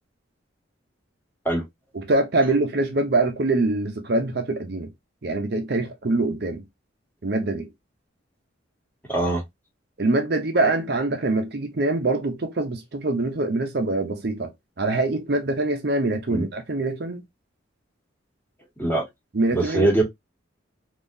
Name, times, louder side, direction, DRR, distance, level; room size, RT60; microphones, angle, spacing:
voice 1, 1.9-4.9 5.2-6.6 7.2-7.7 10.0-14.5 14.8-17.2 19.3-19.9, right 2 dB, 55° right, 0.6 m, -24 dB
voice 2, 9.1-9.4 16.3-16.4 18.8-19.0 19.5-20.0, right 2 dB, 10° left, 1.2 m, -22 dB
3.6 x 2.8 x 2.6 m
head